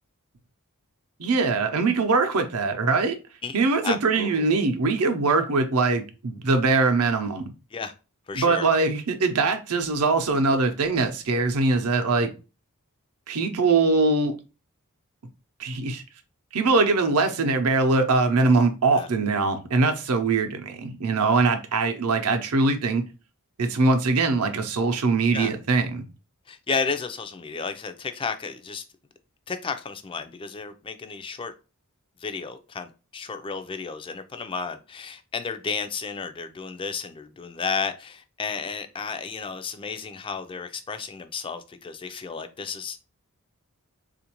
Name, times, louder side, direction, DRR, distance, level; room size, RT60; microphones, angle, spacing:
voice 1, 1.2-3.2 3.5-7.5 8.3-12.3 13.3-14.4 15.6-16.0 16.5-23.0 23.6-26.0, right 3 dB, 75° right, 0.7 m, -22 dB
voice 2, 3.8-4.4 7.7-7.9 8.3-8.7 18.9-19.1 25.3-25.5 26.5-28.8 29.5-31.5 32.2-43.0, left 5 dB, 25° left, 0.4 m, -32 dB
3.7 x 2.5 x 2.9 m
head